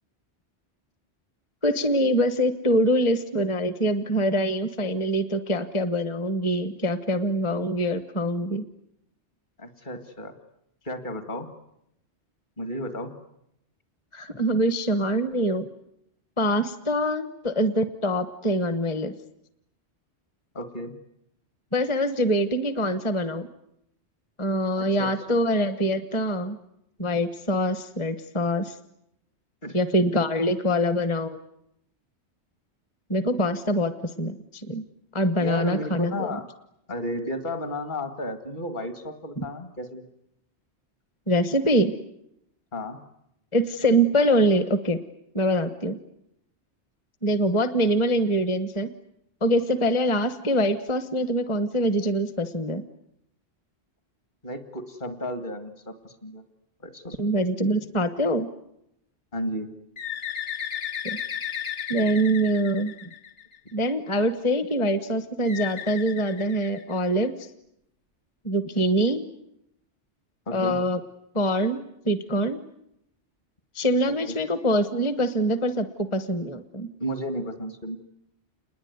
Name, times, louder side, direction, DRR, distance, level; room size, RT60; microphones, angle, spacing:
voice 1, 1.6-8.6 14.1-15.7 16.4-19.1 21.7-23.5 24.4-26.6 27.0-28.8 29.7-31.4 33.1-33.9 34.2-34.8 35.1-36.4 39.4-39.5 41.3-41.9 43.5-45.0 45.3-46.0 47.2-48.9 49.4-52.8 57.2-58.5 61.0-61.2 61.9-63.1 63.7-67.5 68.4-69.2 70.5-71.0 71.3-72.6 73.7-75.9 76.1-76.9, equal, 25° left, 11 dB, 1.2 m, -24 dB
voice 2, 9.6-10.3 10.8-11.5 12.6-13.1 20.5-20.9 24.8-25.4 29.6-29.8 35.4-36.4 36.9-40.1 42.7-43.0 54.4-56.4 56.8-57.2 59.3-59.7 70.5-70.8 74.1-74.4 77.0-78.0, equal, 45° left, 8 dB, 2.2 m, -33 dB
Bird, 60.0-63.7 65.4-67.2, left 8 dB, 85° left, 1.7 m, -34 dB
28.5 x 21.5 x 9.6 m, 0.81 s
omnidirectional pair, 1.2 m